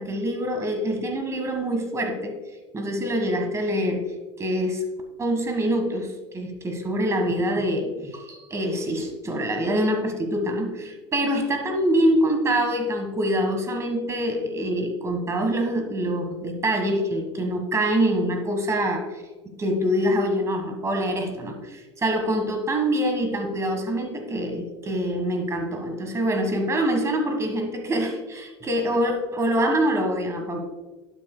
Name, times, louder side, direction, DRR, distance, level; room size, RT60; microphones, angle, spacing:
voice 1, 0.0-2.3 2.7-4.0 4.4-4.8 5.2-30.6, equal, 20° right, 4 dB, 1.5 m, -25 dB
11.5 x 7.9 x 2.2 m, 1.2 s
supercardioid pair, 120°, 15 cm